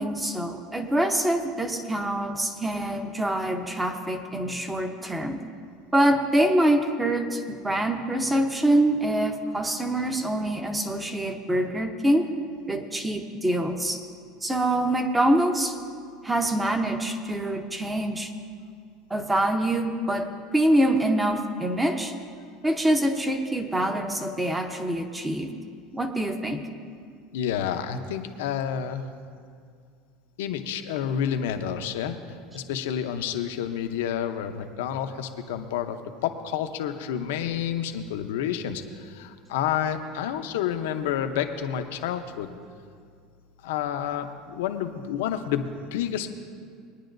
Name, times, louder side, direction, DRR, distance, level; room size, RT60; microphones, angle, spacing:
voice 1, 0.0-5.4 5.9-12.3 12.7-14.0 14.4-15.8 16.2-18.3 19.1-22.1 22.6-25.5 25.9-26.7, right 1 dB, 10° right, 6 dB, 0.8 m, -25 dB
voice 2, 27.3-29.0 30.4-32.2 32.5-42.5 43.6-46.3, left 9 dB, 90° left, 7 dB, 0.8 m, -29 dB
21.5 x 10.0 x 2.6 m, 2.2 s
supercardioid pair, 135°, 0 cm